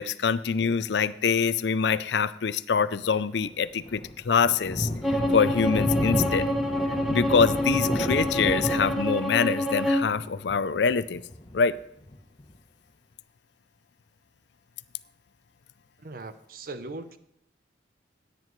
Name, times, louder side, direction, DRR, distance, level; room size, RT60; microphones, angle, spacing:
voice 1, 0.0-4.9 5.3-6.5 7.1-11.2 11.5-11.7, left 6 dB, 70° left, 16 dB, 0.4 m, -25 dB
Thunder, 3.4-12.5, left 1 dB, 25° left, 0.9 m, -32 dB
Bowed string instrument, 5.0-10.1, equal, ahead, 1.1 m, -27 dB
voice 2, 16.0-17.2, right 3 dB, 50° right, 11 dB, 0.7 m, -39 dB
16.5 x 9.3 x 3.1 m, 0.77 s
head